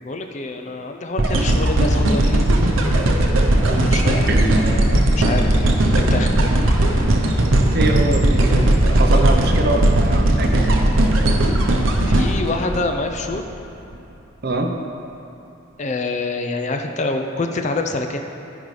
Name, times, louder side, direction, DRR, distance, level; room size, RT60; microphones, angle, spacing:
voice 1, 0.0-2.5 3.8-6.5 12.0-13.4 15.8-18.2, left 2 dB, 35° left, 4 dB, 0.5 m, -26 dB
sound 1, 1.2-13.4 13.9-14.0, right 1 dB, 85° right, 0.8 m, -17 dB
voice 2, 4.3-4.6 7.7-8.7 9.0-11.2 14.4-14.7, right 2 dB, 55° right, 3 dB, 0.7 m, -23 dB
13.5 x 5.1 x 3.3 m, 2.9 s
head